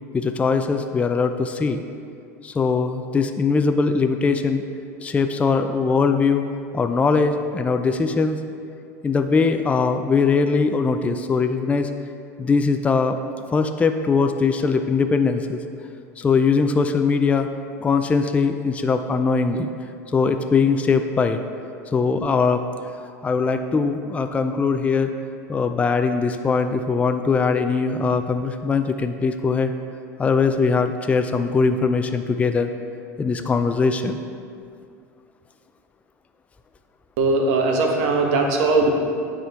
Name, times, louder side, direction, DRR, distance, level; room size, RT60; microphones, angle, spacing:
voice 1, 0.1-1.8 2.4-4.6 5.0-6.4 6.7-8.4 9.0-11.9 12.4-13.2 13.5-15.6 16.2-17.5 17.8-19.7 20.1-21.4 21.9-22.6 23.2-25.1 25.5-29.7 30.2-32.7 33.2-34.2, left 4 dB, 15° left, 7 dB, 0.3 m, -21 dB
voice 2, 37.2-38.9, right 3 dB, 65° right, 1 dB, 1.1 m, -19 dB
10.0 x 3.7 x 3.5 m, 2.4 s
hypercardioid pair, 95°, 9 cm